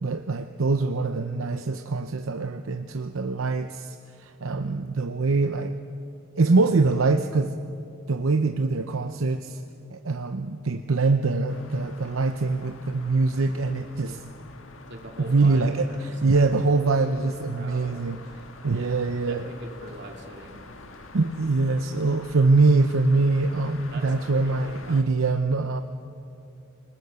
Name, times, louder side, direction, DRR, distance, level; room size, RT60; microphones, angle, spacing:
voice 1, 0.0-5.7 6.4-7.6 8.1-9.6 9.9-14.2 15.3-18.2 18.6-19.4 21.1-25.8, right 3 dB, 80° right, 7 dB, 0.7 m, -23 dB
sound 1, 11.5-25.0, left 2 dB, 75° left, 1.7 m, -46 dB
voice 2, 14.9-15.6 15.9-16.5 17.6-18.0 18.7-20.7 23.9-25.0, right 2 dB, 60° right, 2 dB, 2.6 m, -43 dB
28.0 x 19.5 x 7.0 m, 2.6 s
head